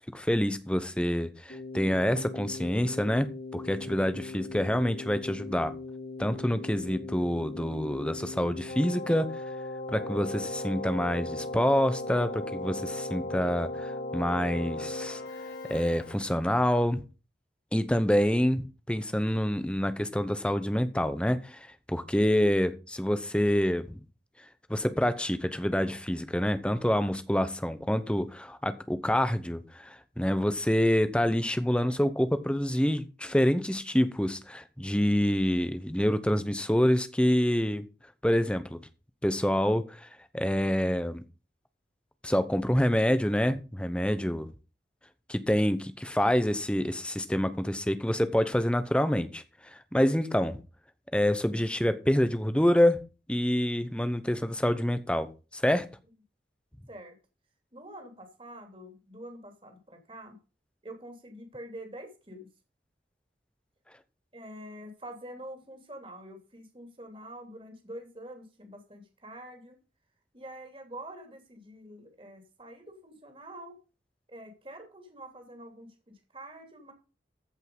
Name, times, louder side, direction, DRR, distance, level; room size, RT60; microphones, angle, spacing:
voice 1, 0.1-5.7 6.2-9.4 9.9-15.2 15.7-17.0 17.7-24.0 24.7-37.9 38.2-38.8 39.2-40.1 40.3-41.2 42.2-44.5 45.3-50.6 51.1-53.0 53.3-55.9, equal, 5° left, 0.8 m, -27 dB
Keyboard (musical), 1.5-16.5, left 2 dB, 80° left, 5.7 m, -38 dB
voice 2, 57.7-60.4 60.8-62.5 64.3-69.8 70.3-73.7 74.3-76.9, right 1 dB, 30° right, 2.7 m, -46 dB
14.5 x 5.4 x 5.4 m
head